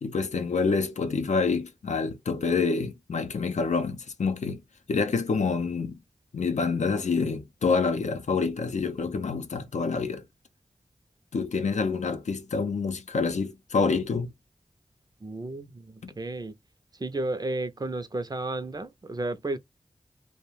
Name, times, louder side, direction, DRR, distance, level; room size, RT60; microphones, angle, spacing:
voice 1, 0.0-4.6 4.9-6.0 6.3-10.2 11.3-14.3 16.0-16.1, left 4 dB, 75° left, 0.5 m, -27 dB
voice 2, 15.2-16.6 16.9-19.6, right 2 dB, 35° right, 0.4 m, -33 dB
2.3 x 2.1 x 3.1 m
wide cardioid pair, 60°, 12 cm